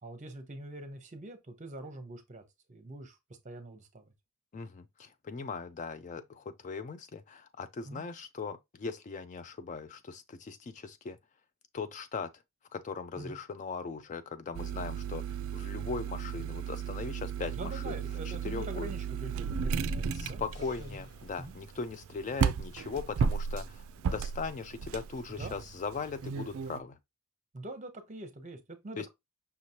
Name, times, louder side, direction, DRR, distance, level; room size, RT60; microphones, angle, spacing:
voice 1, 0.0-2.4 2.7-3.2 3.4-4.1 7.8-8.0 13.2-13.4 17.5-20.4 20.8-21.0 21.4-21.5 25.4-25.6 27.5-29.1, right 2 dB, 35° right, 0.9 m, -44 dB
voice 2, 4.5-11.2 11.7-12.3 12.7-18.0 18.2-18.9 20.1-27.0 29.0-29.1, left 5 dB, 35° left, 0.3 m, -39 dB
sound 1, 14.5-26.8, right 6 dB, 65° right, 0.3 m, -35 dB
sound 2, 20.5-22.8, left 2 dB, 85° left, 3.4 m, -61 dB
5.7 x 3.0 x 2.8 m
head